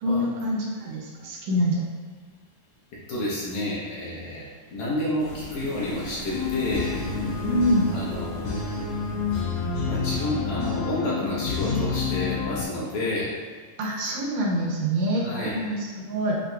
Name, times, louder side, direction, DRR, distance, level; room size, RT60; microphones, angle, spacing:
voice 1, 0.0-1.8 7.5-7.8 13.8-16.4, equal, 75° right, -3 dB, 2.1 m, -26 dB
voice 2, 3.1-4.4 4.7-6.9 7.9-8.6 9.9-13.3 15.2-15.6, left 1 dB, 70° left, -7 dB, 2.0 m, -30 dB
sound 1, 5.2-10.2, equal, 55° right, 0.6 m, -39 dB
sound 2, 6.3-12.6, left 5 dB, 90° left, 2.4 m, -28 dB
7.6 x 2.8 x 2.3 m, 1.5 s
omnidirectional pair, 3.7 m